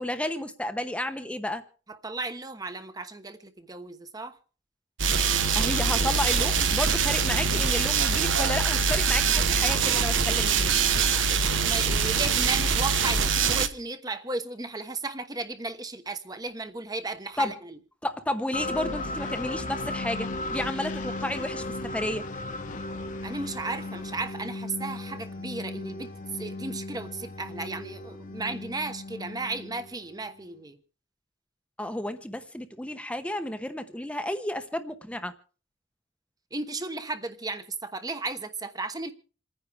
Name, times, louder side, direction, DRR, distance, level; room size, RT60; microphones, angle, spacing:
voice 1, 0.0-1.6 5.6-10.7 17.4-17.5 18.0-22.2 31.8-35.3, left 1 dB, 5° left, 0.9 m, -32 dB
voice 2, 1.9-4.4 10.9-17.8 23.2-30.8 36.5-39.1, right 3 dB, 20° right, 1.1 m, -35 dB
sound 1, 5.0-13.7, right 5 dB, 85° right, 1.1 m, -24 dB
sound 2, 18.5-30.3, left 2 dB, 45° left, 1.1 m, -36 dB
28.0 x 9.9 x 3.5 m
head